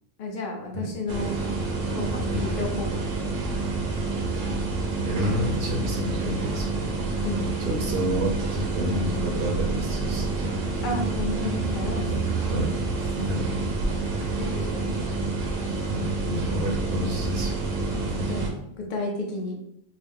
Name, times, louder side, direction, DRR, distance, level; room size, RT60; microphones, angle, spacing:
voice 1, 0.2-1.3 1.9-3.1 7.2-7.5 10.8-12.2 13.2-13.3 14.4-15.0 17.9-19.6, left 2 dB, 55° left, 0 dB, 0.6 m, -32 dB
Quiet House Ambience, 1.1-18.5, right 3 dB, 80° right, 1.0 m, -28 dB
voice 2, 5.0-6.9 7.6-10.5 12.5-13.5 15.8-17.6, equal, 55° right, 0 dB, 0.8 m, -29 dB
3.8 x 2.2 x 3.4 m, 0.74 s
omnidirectional pair, 1.3 m